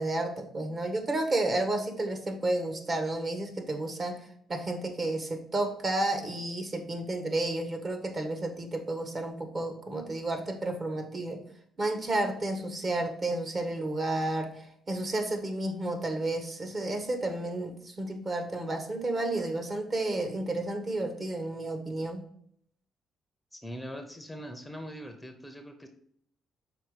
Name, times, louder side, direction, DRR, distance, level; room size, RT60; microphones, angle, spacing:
voice 1, 0.0-11.4 11.8-22.3, right 2 dB, 40° right, 6 dB, 1.4 m, -31 dB
voice 2, 23.5-25.9, equal, 10° left, 6 dB, 0.7 m, -42 dB
5.7 x 4.4 x 5.0 m, 0.66 s
cardioid pair, 90°, 0 cm